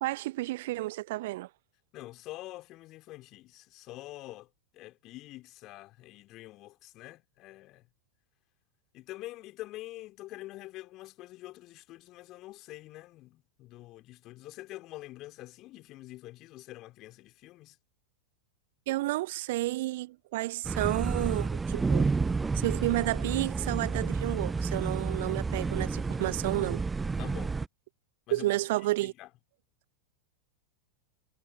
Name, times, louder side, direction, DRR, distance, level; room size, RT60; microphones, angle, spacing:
voice 1, 0.0-1.5 18.9-22.1 22.5-26.8 28.3-29.1, right 18 dB, 50° right, 1.0 m, -31 dB
voice 2, 1.9-7.9 8.9-17.8 27.2-27.6 28.3-28.6 29.0-29.3, left 17 dB, 35° left, 3.8 m, -46 dB
sound 1, 20.6-27.7, right 4 dB, 10° right, 0.5 m, -30 dB
figure-of-eight pair, 90°, 0 cm